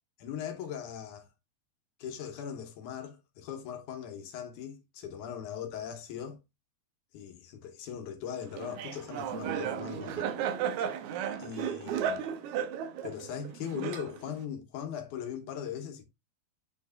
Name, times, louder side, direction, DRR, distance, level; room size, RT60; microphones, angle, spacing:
voice 1, 0.2-1.3 2.0-6.4 7.1-10.3 11.4-12.3 13.0-16.0, left 8 dB, 85° left, 2.5 m, -39 dB
Laughter, 8.6-14.4, right 8 dB, 80° right, 2.2 m, -34 dB
7.6 x 6.5 x 2.4 m
omnidirectional pair, 3.4 m